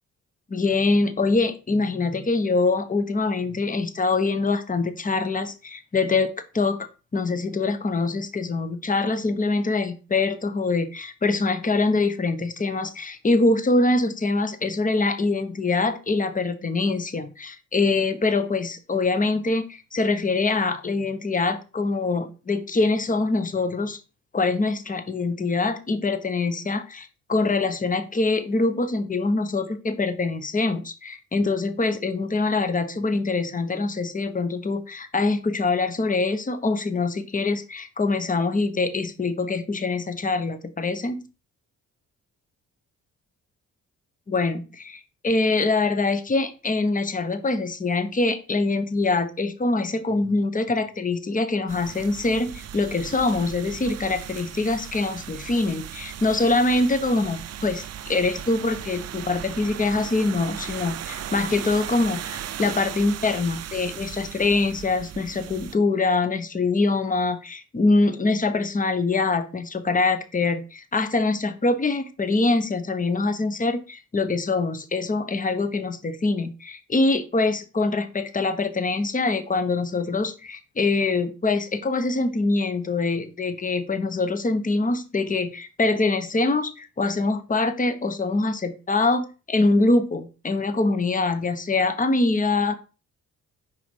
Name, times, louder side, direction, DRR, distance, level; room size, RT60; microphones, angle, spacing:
voice 1, 0.5-6.9 7.1-24.0 24.3-41.2 44.3-92.7, left 3 dB, 25° left, 0.9 m, -24 dB
sound 1, 51.7-65.8, right 10 dB, 50° right, 0.5 m, -37 dB
4.9 x 4.1 x 5.3 m
supercardioid pair, 65°, 33 cm